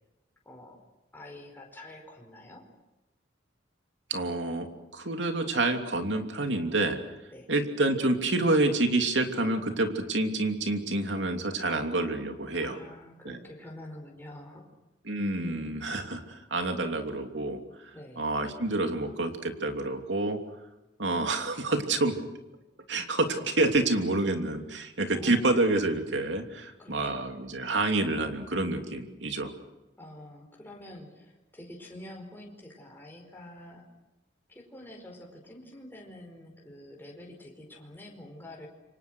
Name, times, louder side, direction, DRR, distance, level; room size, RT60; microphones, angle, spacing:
voice 1, 0.4-0.8 1.1-2.7 7.3-7.5 12.6-14.7 17.9-18.3 25.1-25.6 26.8-27.3 30.0-33.9 34.5-38.7, left 1 dB, 10° left, 0 dB, 4.9 m, -47 dB
voice 2, 4.1-7.0 7.5-12.8 13.2-13.4 15.1-20.4 21.0-22.2 22.9-29.5, right 2 dB, 70° right, 5 dB, 3.0 m, -28 dB
28.5 x 25.0 x 6.4 m, 1.0 s
head